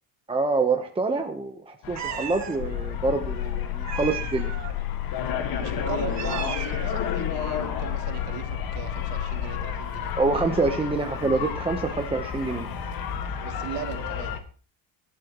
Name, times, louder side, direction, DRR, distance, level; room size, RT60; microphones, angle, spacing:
voice 1, 0.3-4.5 10.2-12.7, right 3 dB, 10° right, 3 dB, 0.9 m, -26 dB
sound 1, 1.8-14.4, left 7 dB, 45° left, 1.8 m, -33 dB
Meow, 1.9-2.6 3.8-4.7 6.0-7.1, right 9 dB, 35° right, 1.7 m, -35 dB
sound 2, 2.6-12.2, left 12 dB, 70° left, 1.5 m, -33 dB
voice 2, 5.6-10.2 13.4-14.4, right 10 dB, 80° right, 5 dB, 2.8 m, -38 dB
26.0 x 12.0 x 3.0 m, 0.39 s
cardioid pair, 175°, 49 cm